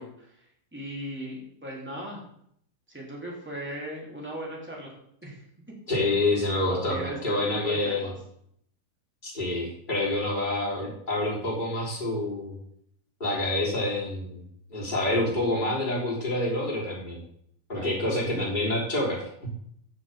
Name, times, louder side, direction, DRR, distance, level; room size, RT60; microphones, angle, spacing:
voice 1, 0.0-2.2 2.9-4.9 5.2-5.4 6.0-6.3 6.5-8.1 17.7-18.2, equal, 5° right, -3 dB, 2.6 m, -38 dB
voice 2, 5.9-8.1 9.2-12.5 13.2-14.4 14.7-17.2 17.7-19.6, left 1 dB, 15° left, -4 dB, 3.3 m, -27 dB
9.2 x 6.1 x 7.4 m, 0.70 s
omnidirectional pair, 4.3 m